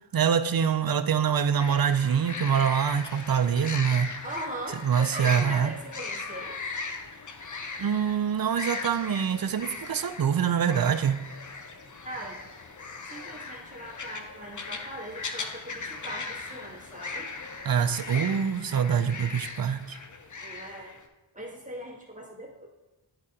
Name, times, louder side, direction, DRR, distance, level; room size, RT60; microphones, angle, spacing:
voice 1, 0.1-4.2 4.8-5.7 7.8-11.2 17.7-20.0, right 7 dB, 45° right, 11 dB, 0.5 m, -25 dB
sound 1, 1.6-21.0, left 4 dB, 40° left, 0.7 m, -39 dB
voice 2, 4.2-6.6 7.9-8.0 12.0-12.4 13.1-17.3 20.4-20.9 21.3-22.7, right 1 dB, 15° right, -3 dB, 1.8 m, -40 dB
10.0 x 4.1 x 3.7 m, 1.1 s
wide cardioid pair, 60°, 49 cm